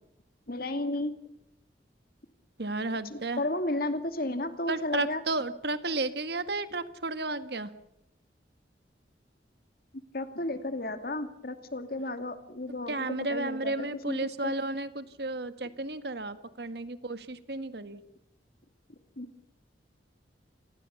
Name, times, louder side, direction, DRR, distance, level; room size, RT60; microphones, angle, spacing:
voice 1, 0.5-1.1 3.0-5.2 10.1-12.9 13.3-14.5 19.2-19.3, left 2 dB, 55° left, 9 dB, 2.5 m, -33 dB
voice 2, 2.6-3.4 4.7-7.7 12.9-18.0, right 2 dB, 65° right, 11 dB, 1.7 m, -33 dB
28.0 x 20.0 x 7.1 m, 0.79 s
head